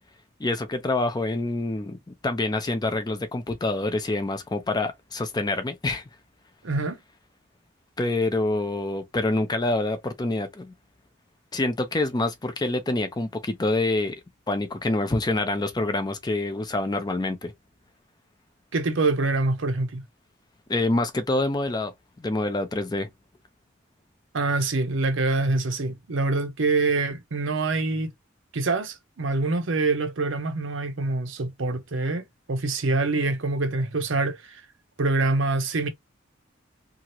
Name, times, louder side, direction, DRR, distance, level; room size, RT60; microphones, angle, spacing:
voice 1, 0.4-6.0 8.0-10.7 11.5-14.2 14.5-17.5 20.7-21.9 22.2-23.1, left 2 dB, 20° left, 0.5 m, -26 dB
voice 2, 6.6-7.0 18.7-20.0 24.3-28.1 28.5-34.6 35.0-35.9, right 3 dB, 65° right, 0.7 m, -25 dB
2.8 x 2.4 x 2.9 m
head